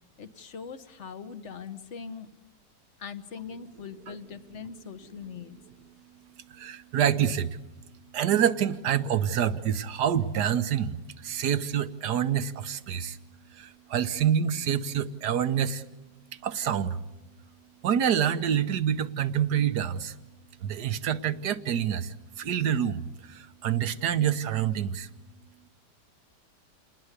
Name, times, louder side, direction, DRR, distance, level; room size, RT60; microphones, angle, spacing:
voice 1, 0.2-2.3 3.0-5.6, left 6 dB, 45° left, 12 dB, 1.5 m, -41 dB
voice 2, 6.5-7.6 8.1-13.2 13.5-15.8 16.4-17.0 17.8-20.2 20.6-25.1, right 9 dB, 70° right, 12 dB, 1.6 m, -27 dB
29.0 x 20.0 x 8.3 m, 1.0 s
omnidirectional pair, 1.9 m